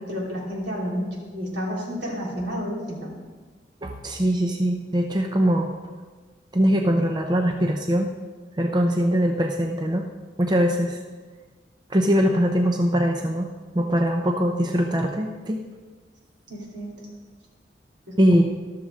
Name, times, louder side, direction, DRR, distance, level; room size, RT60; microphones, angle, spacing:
voice 1, 0.1-3.1 16.5-17.1 18.1-18.4, equal, 80° right, -3 dB, 3.3 m, -31 dB
voice 2, 3.8-5.7 6.5-8.1 8.6-10.1 10.4-11.0 11.9-13.5 13.7-15.6 18.2-18.4, equal, 25° right, 3 dB, 0.6 m, -22 dB
13.5 x 12.5 x 3.7 m, 1.4 s
head